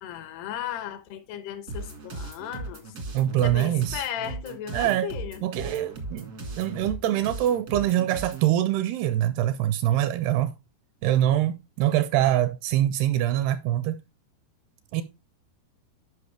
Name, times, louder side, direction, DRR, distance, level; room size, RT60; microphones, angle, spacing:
voice 1, 0.0-2.8 3.4-5.4, left 10 dB, 75° left, 2.9 m, -35 dB
sound 1, 1.7-8.5, right 3 dB, 60° right, 0.9 m, -37 dB
voice 2, 3.1-4.0 4.7-5.1 5.4-10.5 11.0-14.0 14.9-15.0, right 12 dB, 80° right, 2.4 m, -24 dB
11.5 x 5.5 x 3.3 m
omnidirectional pair, 5.0 m